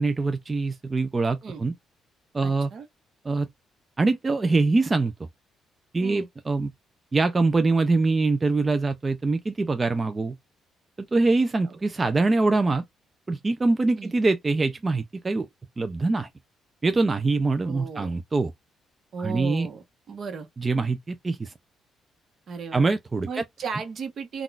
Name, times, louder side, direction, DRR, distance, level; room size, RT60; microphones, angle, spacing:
voice 1, 0.0-1.7 2.3-2.7 3.2-3.5 4.0-5.1 5.9-6.7 7.1-10.3 11.1-12.8 13.3-15.5 15.8-16.3 16.8-18.5 19.2-19.7 20.6-21.5 22.7-23.4, right 3 dB, 25° right, 0.4 m, -24 dB
voice 2, 2.4-2.9 6.0-6.3 11.6-11.7 14.0-14.1 17.6-18.1 19.1-20.5 22.5-22.8 23.3-24.4, right 5 dB, 55° right, 0.9 m, -35 dB
3.7 x 2.3 x 2.3 m
cardioid pair, 90°, 0 cm